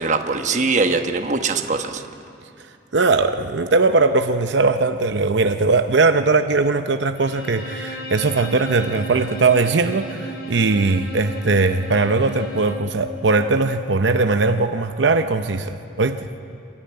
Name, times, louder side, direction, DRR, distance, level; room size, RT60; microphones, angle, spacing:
voice 1, 0.0-2.0, right 4 dB, 40° right, 6 dB, 1.1 m, -21 dB
voice 2, 2.9-16.3, right 3 dB, 80° right, 8 dB, 0.7 m, -19 dB
Bowed string instrument, 7.1-12.9, right 1 dB, 70° left, 3.0 m, -35 dB
26.5 x 14.0 x 9.5 m, 2.6 s
head